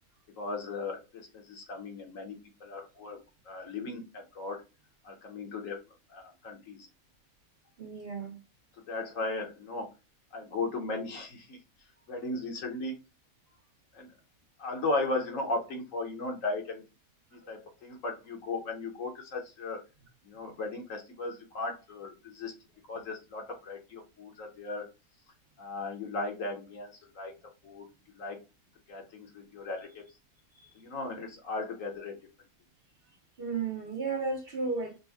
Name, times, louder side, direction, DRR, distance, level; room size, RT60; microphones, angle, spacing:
voice 1, 0.4-3.2 3.4-4.6 5.0-5.8 6.1-6.9 8.9-9.9 10.3-11.6 12.1-12.9 13.9-14.1 14.6-16.8 17.3-19.8 20.2-22.5 22.9-24.8 25.6-27.3 27.6-27.9 28.1-28.4 28.9-30.0 30.7-32.2, left 2 dB, 60° left, 1.3 m, -36 dB
voice 2, 7.8-8.3 30.5-30.7 33.4-35.0, right 4 dB, 45° right, 0.9 m, -34 dB
5.3 x 2.2 x 3.4 m
omnidirectional pair, 1.6 m